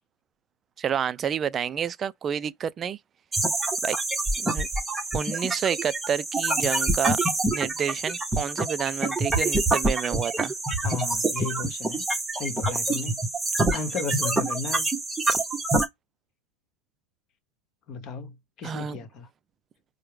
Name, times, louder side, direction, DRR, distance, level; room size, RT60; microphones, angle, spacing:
voice 1, 0.8-3.0 3.8-4.0 4.4-4.7 5.1-7.2 7.5-10.5 18.6-19.0, right 8 dB, 25° right, 0.3 m, -29 dB
sound 1, 3.3-15.8, right 2 dB, 10° right, 0.9 m, -26 dB
voice 2, 10.8-12.0 12.3-13.2 13.7-14.9 17.9-19.3, left 4 dB, 40° left, 1.1 m, -34 dB
4.6 x 2.1 x 3.2 m
hypercardioid pair, 110°, 0 cm